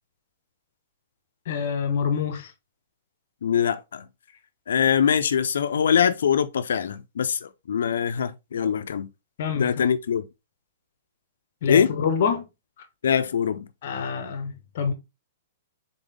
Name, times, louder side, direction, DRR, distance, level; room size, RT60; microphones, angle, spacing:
voice 1, 1.5-2.5 9.4-9.8 11.6-12.5 13.8-14.9, left 6 dB, 50° left, 1.0 m, -26 dB
voice 2, 3.4-4.1 4.7-9.1 9.5-10.3 11.7-11.9 13.0-13.7, left 8 dB, 90° left, 0.5 m, -23 dB
4.0 x 3.9 x 3.4 m
hypercardioid pair, 165°, 0 cm